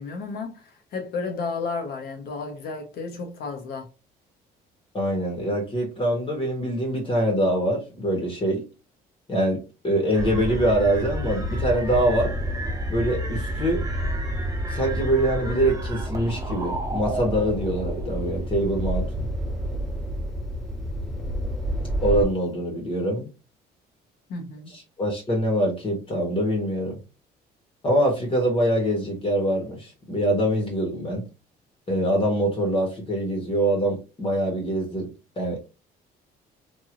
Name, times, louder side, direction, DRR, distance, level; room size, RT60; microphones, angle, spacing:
voice 1, 0.0-3.9 24.3-24.7, left 4 dB, 70° left, 1.0 m, -32 dB
voice 2, 4.9-8.6 9.3-12.3 12.9-13.8 14.7-19.3 22.0-23.3 24.7-27.0 27.8-31.2 31.9-35.1 35.4-35.6, right 1 dB, 30° left, 1.2 m, -24 dB
sound 1, 10.1-18.5, right 2 dB, 20° right, 0.7 m, -37 dB
sound 2, 10.2-22.3, equal, 5° left, 1.3 m, -29 dB
3.1 x 2.6 x 2.5 m
cardioid pair, 110°, 17 cm